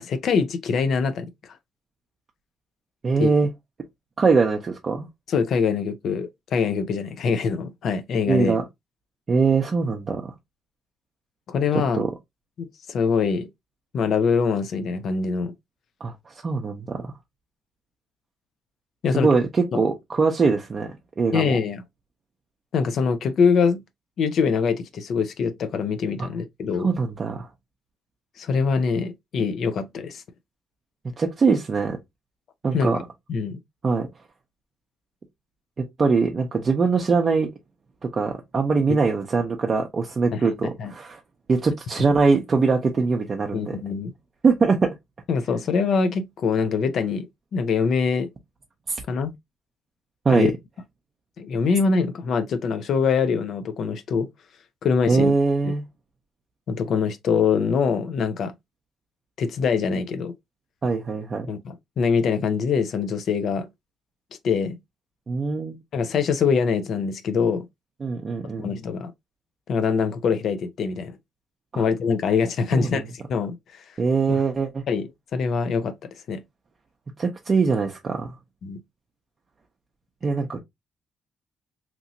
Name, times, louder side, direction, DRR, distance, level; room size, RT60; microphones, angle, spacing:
voice 1, 0.0-1.6 3.2-3.3 5.3-8.6 11.5-12.0 12.6-13.5 13.9-15.5 19.0-19.3 19.7-19.8 21.3-21.8 22.7-23.8 24.2-26.9 28.4-30.2 32.7-32.9 33.3-33.6 40.3-40.5 40.8-40.9 43.5-44.1 45.3-48.3 49.1-49.3 50.3-50.5 51.4-54.3 54.8-55.3 55.6-55.7 56.7-58.5 59.4-60.3 61.5-63.7 64.4-64.8 65.9-67.7 68.6-69.1 69.7-71.2 71.8-74.0 74.3-74.4 74.9-76.4 78.6-78.8, left 5 dB, 65° left, 0.4 m, -24 dB
voice 2, 3.0-3.5 4.2-5.1 8.3-8.6 9.3-10.3 11.9-12.1 16.0-16.1 16.4-17.0 19.1-20.9 21.2-21.6 26.8-27.5 31.2-32.0 32.6-33.0 33.8-34.1 35.8-37.5 38.0-41.2 41.5-43.8 44.4-44.9 48.9-49.0 50.2-50.5 55.1-55.8 60.8-61.5 65.3-65.8 68.0-68.7 71.7-71.8 72.7-73.0 74.0-74.8 77.2-78.3 80.2-80.6, right 4 dB, 40° right, 0.5 m, -22 dB
2.9 x 2.6 x 2.5 m
cardioid pair, 90°, 0 cm